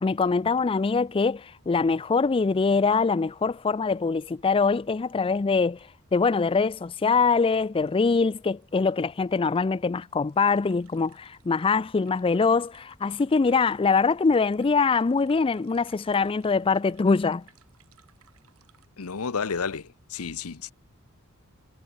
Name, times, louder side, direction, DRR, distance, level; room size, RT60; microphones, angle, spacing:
voice 1, 0.0-5.8 6.1-17.4, left 4 dB, 25° left, 0.3 m, -23 dB
sound 1, 3.0-3.1 3.4-3.5 5.2-5.3 5.8-5.9 6.2-18.9, right 8 dB, 85° right, 7.9 m, -62 dB
voice 2, 19.0-20.7, left 5 dB, 85° left, 0.9 m, -31 dB
head